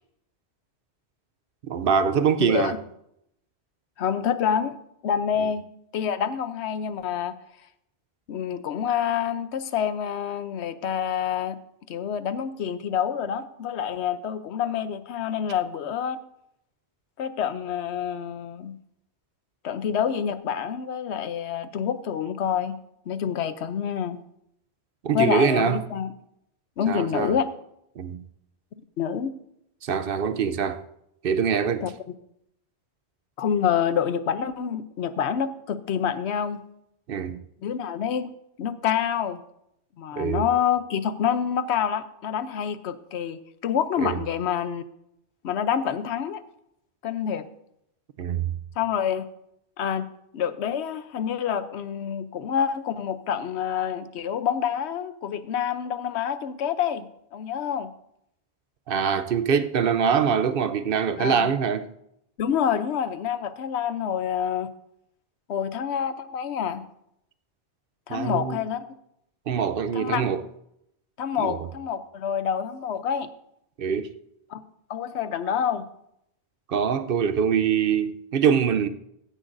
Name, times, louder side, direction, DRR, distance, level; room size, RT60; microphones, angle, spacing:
voice 1, 1.7-2.8 25.0-25.8 26.9-27.4 28.0-28.2 29.8-30.8 31.2-31.9 37.1-37.4 40.2-40.5 44.0-44.2 48.2-48.5 58.9-61.9 68.1-68.6 69.5-70.4 71.4-71.6 73.8-74.1 76.7-78.9, right 7 dB, 65° right, 0.8 m, -24 dB
voice 2, 2.4-2.8 4.0-5.7 5.9-7.4 8.3-11.6 11.9-16.2 17.2-18.8 19.6-22.8 23.1-24.2 25.1-26.1 26.8-27.5 29.0-29.3 31.8-31.9 33.4-36.6 37.6-38.3 38.6-39.4 40.0-44.8 45.4-46.4 47.0-47.4 48.8-49.3 49.8-50.1 50.3-57.9 61.2-61.5 62.4-64.7 65.5-66.8 68.1-68.8 69.9-70.3 71.2-73.3 74.5-75.9, left 8 dB, 80° left, 0.9 m, -27 dB
15.5 x 10.0 x 2.6 m
omnidirectional pair, 1.1 m